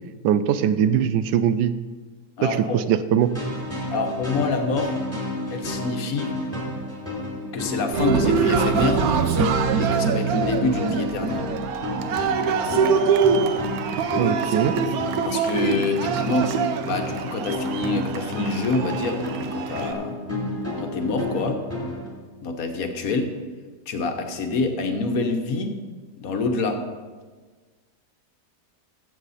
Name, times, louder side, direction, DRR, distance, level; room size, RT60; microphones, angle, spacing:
voice 1, 0.2-1.7 2.4-3.3 14.2-14.7, right 9 dB, 80° right, 13 dB, 1.2 m, -21 dB
voice 2, 2.4-2.8 3.9-5.0 5.5-6.4 7.5-9.0 9.8-11.5 15.2-16.6 16.8-20.2 20.8-21.6 22.4-23.3 23.9-25.8 26.2-26.9, left 3 dB, 60° left, 5 dB, 1.4 m, -26 dB
sound 1, 3.2-22.1, left 1 dB, 10° right, 3.2 m, -31 dB
Cheering, 7.9-19.9, right 6 dB, 65° right, 1.1 m, -24 dB
15.0 x 7.3 x 4.1 m, 1.4 s
omnidirectional pair, 1.9 m